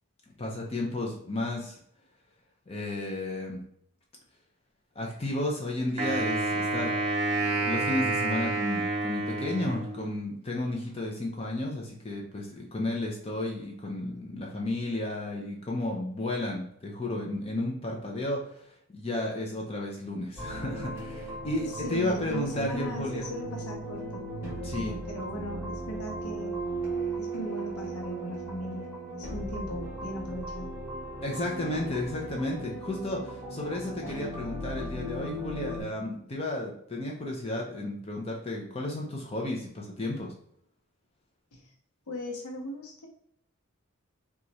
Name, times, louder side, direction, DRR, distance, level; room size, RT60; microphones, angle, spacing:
voice 1, 0.4-1.8 2.7-3.6 5.0-6.9 7.4-23.3 24.6-25.0 31.2-40.3, left 1 dB, 25° left, -1 dB, 0.5 m, -33 dB
Wind instrument woodwind instrument, 6.0-10.3, right 2 dB, 30° right, 0.6 m, -29 dB
sound 1, 20.4-35.8, right 1 dB, 10° right, 1.2 m, -37 dB
voice 2, 21.7-24.3 24.6-26.5 27.1-30.8 41.5-41.7 42.1-43.1, equal, 85° left, 0 dB, 0.8 m, -38 dB
3.0 x 2.4 x 3.9 m, 0.70 s
head